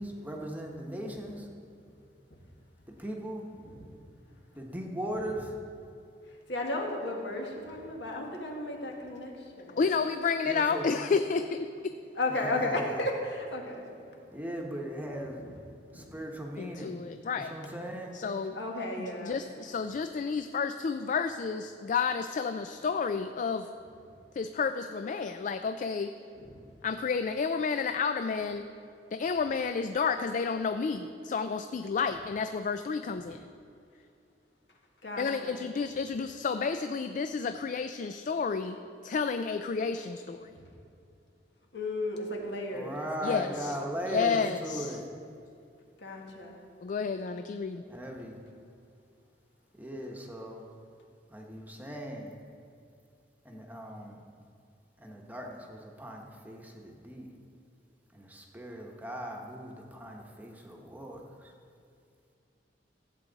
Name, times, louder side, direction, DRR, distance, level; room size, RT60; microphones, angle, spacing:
voice 1, 0.0-1.5 3.0-3.4 4.6-5.5 10.5-11.0 12.6-12.7 14.3-15.4 15.9-17.0 17.5-18.2 42.7-45.0 47.9-48.4 49.8-50.6 51.3-52.3 53.4-54.2 55.0-57.3 58.1-61.2, equal, 10° right, 1 dB, 1.0 m, -38 dB
voice 2, 6.3-9.8 12.2-14.3 15.0-15.1 15.4-15.5 15.9-16.1 18.5-19.4 26.4-26.6 35.0-35.6 40.5-40.7 41.7-43.8 46.0-46.6, left 2 dB, 75° left, 0 dB, 1.8 m, -35 dB
voice 3, 9.8-11.6 16.6-17.6 18.1-18.6 19.2-23.7 24.3-26.1 26.8-28.7 29.1-33.5 35.2-38.8 39.0-40.5 43.2-43.8 44.1-45.0 46.8-47.8, left 5 dB, 45° left, 9 dB, 0.3 m, -31 dB
14.5 x 8.3 x 4.0 m, 2.5 s
head